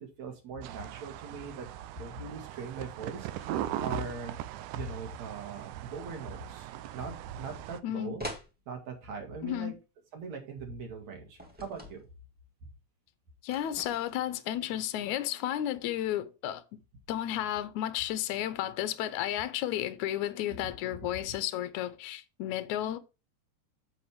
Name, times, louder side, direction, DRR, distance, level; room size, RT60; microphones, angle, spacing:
voice 1, 0.0-1.7 1.9-4.4 4.7-8.2 8.7-9.7 10.1-12.1, right 4 dB, 60° right, 3.4 m, -41 dB
sound 1, 0.6-7.8, right 13 dB, 85° right, 2.2 m, -40 dB
voice 2, 7.8-8.2 9.4-9.8 13.4-16.6 17.1-23.0, left 12 dB, 75° left, 2.1 m, -33 dB
sound 2, 8.2-8.5 11.4-12.0 13.5-14.3, equal, 5° right, 1.5 m, -42 dB
8.0 x 7.7 x 3.4 m
omnidirectional pair, 3.6 m